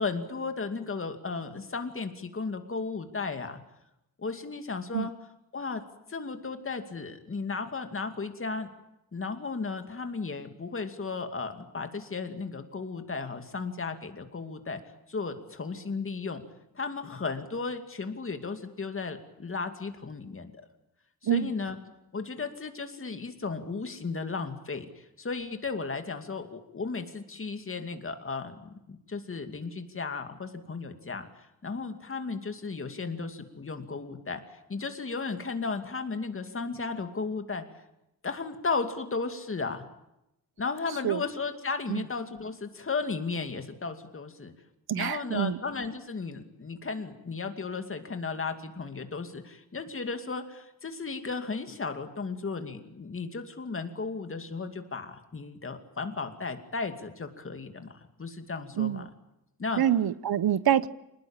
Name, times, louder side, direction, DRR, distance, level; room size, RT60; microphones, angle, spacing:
voice 1, 0.0-3.6 4.2-5.1 5.5-5.8 6.1-8.7 9.1-14.8 15.1-16.4 16.7-20.6 21.2-21.8 22.1-31.3 31.6-37.6 38.2-39.8 40.6-44.5 44.9-59.1 59.6-59.8, left 4 dB, 35° left, 7 dB, 2.5 m, -35 dB
voice 2, 44.9-45.6 58.8-59.0 59.8-60.9, right 10 dB, 85° right, 17 dB, 1.0 m, -26 dB
27.5 x 19.5 x 9.0 m, 0.87 s
wide cardioid pair, 175°, 36 cm